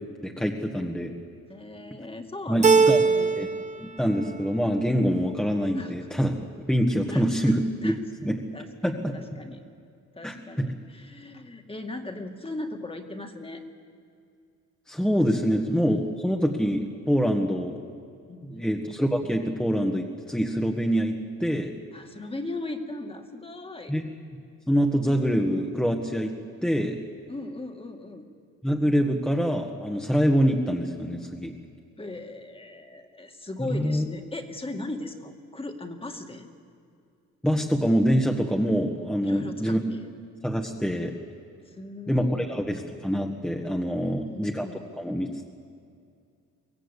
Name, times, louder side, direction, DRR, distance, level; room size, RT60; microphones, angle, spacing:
voice 1, 0.2-1.1 2.5-3.0 3.3-3.5 3.8-6.4 6.7-8.4 8.8-9.1 10.2-10.7 14.9-17.8 18.4-21.7 23.9-24.1 24.7-26.3 26.6-27.0 28.6-31.5 33.7-34.0 37.4-39.8 40.4-41.1 42.1-44.7 45.0-45.5, equal, 5° left, 1 dB, 1.6 m, -25 dB
voice 2, 1.5-3.3 5.7-6.1 7.1-7.5 7.8-8.0 8.5-9.6 10.2-13.6 18.3-18.8 21.9-23.9 27.3-28.3 32.0-36.5 39.2-40.0 41.7-42.7 43.9-44.8, left 2 dB, 20° left, 5 dB, 2.2 m, -38 dB
Keyboard (musical), 2.6-3.7 4.0-4.8, right 5 dB, 25° right, 1.0 m, -21 dB
23.5 x 17.5 x 8.3 m, 2.3 s
cardioid pair, 90°, 30 cm